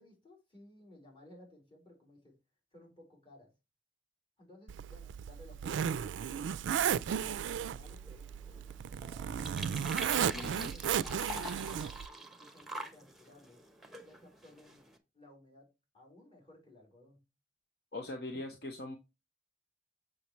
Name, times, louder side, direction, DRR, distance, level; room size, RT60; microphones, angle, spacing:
voice 1, 0.0-2.3 2.7-3.5 4.4-6.2 7.2-9.4 9.9-13.6 14.0-14.9 15.1-15.7 15.9-17.2, left 1 dB, 30° left, -2 dB, 4.1 m, -58 dB
Zipper (clothing), 4.7-12.1, right 8 dB, 85° right, 0.3 m, -34 dB
sound 1, 7.8-15.0, right 1 dB, ahead, 1.0 m, -46 dB
voice 2, 10.3-10.7 17.9-19.0, left 2 dB, 55° left, 4 dB, 1.0 m, -41 dB
7.0 x 6.5 x 3.1 m, 0.26 s
head